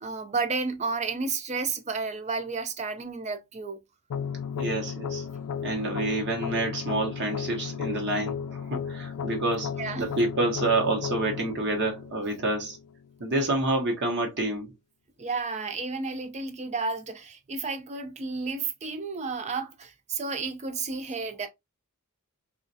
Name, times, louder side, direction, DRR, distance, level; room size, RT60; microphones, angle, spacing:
voice 1, 0.0-3.8 9.8-10.1 15.2-21.5, right 4 dB, 30° right, 0.5 m, -32 dB
sound 1, 4.1-13.1, left 7 dB, 85° left, 0.4 m, -35 dB
voice 2, 4.6-5.2 5.6-9.7 10.0-12.8 13.2-14.7, right 2 dB, 50° right, 1.0 m, -28 dB
3.1 x 2.4 x 2.6 m
head